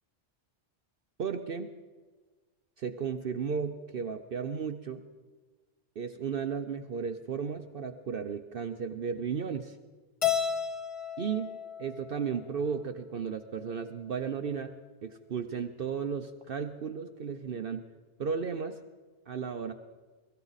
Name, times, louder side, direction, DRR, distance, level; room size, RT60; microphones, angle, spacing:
voice 1, 1.2-1.7 2.8-5.0 6.0-9.8 11.2-11.5 11.8-14.7 15.0-17.9 18.2-18.8 19.3-19.7, right 6 dB, 55° right, 7 dB, 0.8 m, -34 dB
Keyboard (musical), 10.2-12.6, left 8 dB, 35° left, 0.6 m, -33 dB
23.5 x 14.5 x 4.1 m, 1.4 s
omnidirectional pair, 1.2 m